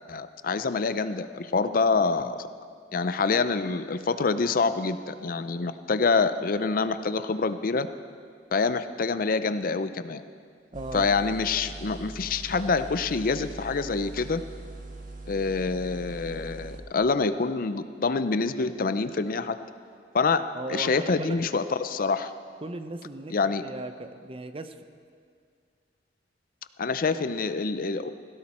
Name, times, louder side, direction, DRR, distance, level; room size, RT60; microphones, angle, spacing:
voice 1, 0.1-2.5 2.9-7.9 8.5-10.2 10.9-14.4 15.3-19.6 20.1-20.4 20.7-22.3 23.3-23.6 26.8-28.1, left 4 dB, 55° left, 12 dB, 0.5 m, -26 dB
voice 2, 10.7-11.1 20.5-21.4 22.6-23.3 23.6-24.7, right 2 dB, 30° right, 9 dB, 0.7 m, -37 dB
sound 1, 10.7-16.8, right 2 dB, 50° right, 1.4 m, -42 dB
17.0 x 16.0 x 4.3 m, 2.1 s
head